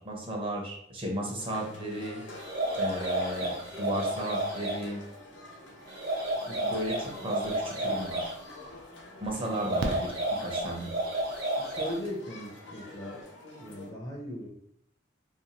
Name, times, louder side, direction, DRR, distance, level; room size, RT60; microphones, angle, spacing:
voice 1, 0.0-2.2 2.7-5.0 6.6-8.3 9.2-10.1 10.4-10.9, right 1 dB, 30° right, -1 dB, 0.6 m, -34 dB
sound 1, 1.4-13.9, left 2 dB, 65° left, 0.8 m, -47 dB
sound 2, 2.4-4.8 5.9-8.3 9.5-12.1, right 1 dB, 50° right, 0.9 m, -32 dB
voice 2, 6.5-6.8 11.4-13.2 13.6-14.5, equal, 20° left, -2 dB, 0.5 m, -39 dB
Fireworks, 8.1-8.2 9.8-11.1 12.9-13.0 13.2-13.3, right 2 dB, 70° right, 0.3 m, -36 dB
2.5 x 2.3 x 2.8 m, 0.70 s
head